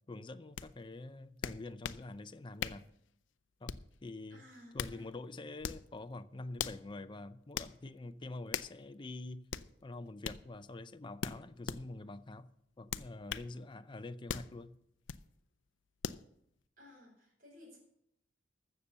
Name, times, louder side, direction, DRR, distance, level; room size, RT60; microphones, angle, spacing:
voice 1, 0.1-2.9 3.6-4.4 4.7-9.4 9.8-12.5 12.8-14.8, left 2 dB, 25° left, 0.5 m, -46 dB
sound 1, 0.6-0.7 1.4-2.0 2.6-2.9 3.7-4.0 4.5-5.0 5.6-5.9 6.6-6.8 7.6-7.7 8.5-8.8 9.5-9.7 10.2-10.4 11.2-11.8 12.9-13.5 14.3-14.5 15.1-15.2 16.0-16.2, left 7 dB, 80° left, 0.5 m, -39 dB
voice 2, 4.3-5.1 16.8-17.8, left 1 dB, 50° right, 4.5 m, -57 dB
14.5 x 6.8 x 6.8 m
head